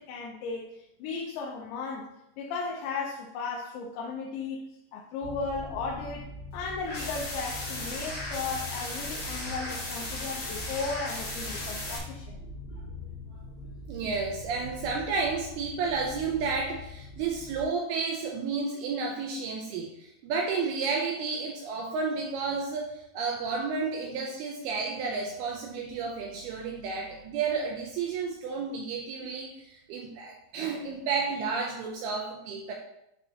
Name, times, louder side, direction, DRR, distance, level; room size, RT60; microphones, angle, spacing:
voice 1, 0.0-2.1 2.4-6.3 6.5-12.4, left 4 dB, 90° left, -2 dB, 3.1 m, -35 dB
sound 1, 5.2-17.6, left 2 dB, 70° left, 2.4 m, -42 dB
sound 2, 6.8-12.0, left 1 dB, 40° left, 1.8 m, -36 dB
voice 2, 13.9-32.7, right 4 dB, 80° right, 0 dB, 2.4 m, -31 dB
11.5 x 3.9 x 2.8 m, 0.83 s
omnidirectional pair, 5.0 m